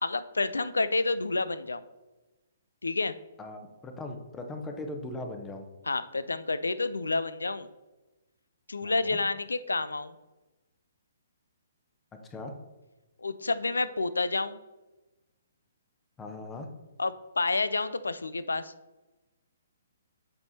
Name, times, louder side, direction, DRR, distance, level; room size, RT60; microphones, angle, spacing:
voice 1, 0.0-1.8 2.8-3.1 5.8-7.7 8.7-10.2 13.2-14.6 17.0-18.7, left 3 dB, 90° left, 14 dB, 0.4 m, -29 dB
voice 2, 3.4-5.7 8.8-9.2 12.2-12.6 16.2-16.7, left 2 dB, 15° left, 4 dB, 0.8 m, -39 dB
7.8 x 3.6 x 4.2 m, 1.1 s
hypercardioid pair, 135°, 0 cm